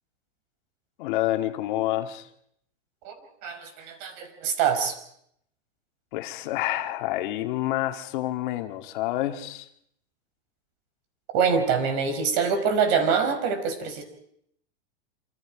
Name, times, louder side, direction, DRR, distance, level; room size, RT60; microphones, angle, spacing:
voice 1, 1.0-2.3 6.1-9.7, left 15 dB, 55° left, 6 dB, 2.1 m, -28 dB
voice 2, 3.4-5.0 11.3-14.0, right 6 dB, 45° right, 8 dB, 5.5 m, -25 dB
28.0 x 26.0 x 5.1 m, 0.71 s
supercardioid pair, 150°, 29 cm